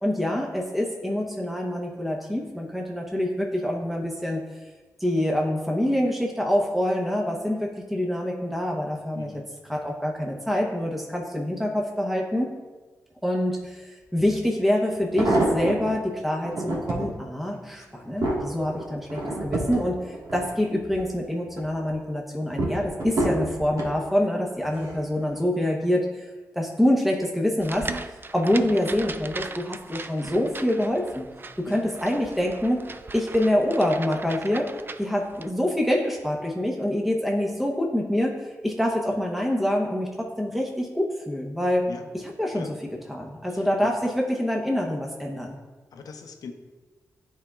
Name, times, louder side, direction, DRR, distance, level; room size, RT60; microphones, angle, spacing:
voice 1, 0.0-4.4 5.0-9.3 9.7-12.5 13.2-31.3 31.6-32.8 33.1-34.7 35.0-41.9 42.1-42.7 43.1-45.6, left 1 dB, ahead, -1 dB, 0.9 m, -26 dB
voice 2, 9.1-9.5 31.7-31.8 41.9-42.1 42.5-42.7 43.5-43.9 45.9-46.5, left 5 dB, 80° left, 5 dB, 0.7 m, -40 dB
sound 1, 14.2-14.3 14.9-15.9 16.4-17.1 17.7-21.1 21.5-21.9 22.6-24.0 24.7-25.1 25.4-25.5, right 2 dB, 70° right, 1.6 m, -28 dB
sound 2, 27.6-35.5, right 3 dB, 35° right, 0.4 m, -39 dB
10.5 x 4.3 x 2.4 m, 1.3 s
cardioid pair, 55°, 6 cm